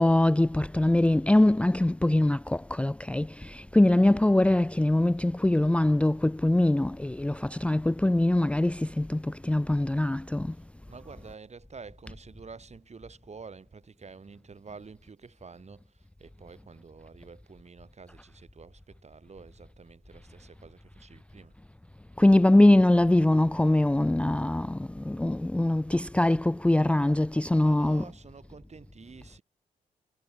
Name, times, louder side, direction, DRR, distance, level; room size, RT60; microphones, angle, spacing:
voice 1, 0.0-10.6 22.2-28.1, left 1 dB, 5° left, 0.5 m, -23 dB
voice 2, 10.5-21.5 27.5-29.4, right 5 dB, 45° right, 6.4 m, -49 dB
supercardioid pair, 55°, 16 cm